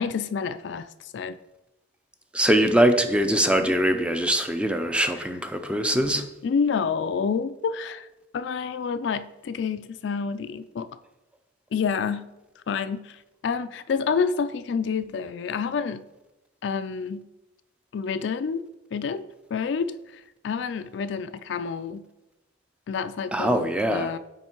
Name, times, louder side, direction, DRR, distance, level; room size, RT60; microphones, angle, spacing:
voice 1, 0.0-1.4 5.9-8.1 8.3-10.9 11.7-12.3 12.7-16.1 16.6-17.3 17.9-18.6 18.9-19.2 19.5-22.1 22.9-24.2, left 6 dB, 65° left, 12 dB, 0.3 m, -28 dB
voice 2, 2.3-6.3 23.3-24.1, right 1 dB, 5° right, 7 dB, 0.4 m, -22 dB
8.9 x 3.2 x 4.4 m, 0.99 s
head